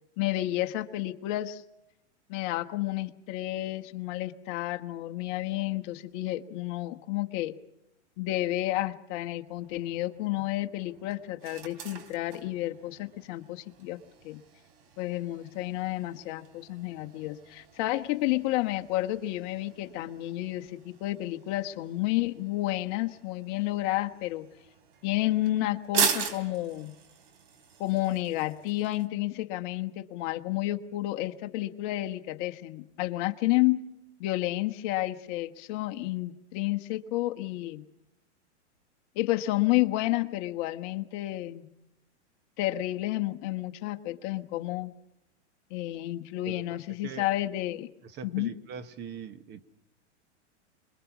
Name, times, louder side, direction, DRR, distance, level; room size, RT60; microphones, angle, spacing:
voice 1, 0.2-1.6 2.3-7.6 8.2-14.0 14.2-14.4 15.0-24.5 25.0-26.9 27.8-33.8 34.2-37.8 39.1-41.6 42.6-44.9 45.7-47.9 48.2-48.5, left 16 dB, 45° left, 7 dB, 1.3 m, -31 dB
sound 1, 9.5-29.1, right 7 dB, 55° right, 3.3 m, -40 dB
voice 2, 48.0-49.6, right 7 dB, 30° right, 12 dB, 1.3 m, -41 dB
26.5 x 22.0 x 6.1 m, 0.85 s
hypercardioid pair, 130°, 35 cm